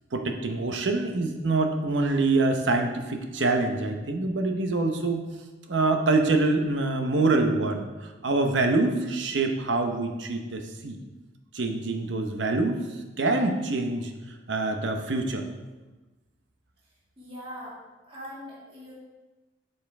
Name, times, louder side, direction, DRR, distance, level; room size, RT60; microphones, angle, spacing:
voice 1, 0.1-5.2 5.7-11.0 11.5-12.8 13.2-14.1 14.5-15.5, right 3 dB, 75° right, 4 dB, 0.8 m, -25 dB
voice 2, 17.2-17.8 18.0-18.9, equal, 30° right, -8 dB, 2.2 m, -41 dB
8.8 x 5.6 x 3.5 m, 1.2 s
head